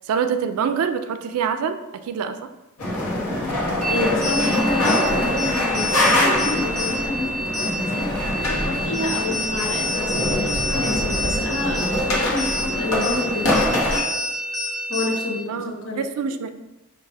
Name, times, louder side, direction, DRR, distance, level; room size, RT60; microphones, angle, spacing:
voice 1, 0.1-2.5 15.5-16.5, right 6 dB, 80° right, 9 dB, 0.3 m, -25 dB
sound 1, 2.8-14.0, left 1 dB, 85° left, 0.9 m, -24 dB
sound 2, 3.8-15.4, equal, 5° left, 0.8 m, -28 dB
voice 2, 3.9-8.1 8.4-14.0 14.9-16.3, left 2 dB, 60° left, 0 dB, 0.8 m, -29 dB
4.7 x 2.3 x 3.3 m, 1.0 s
head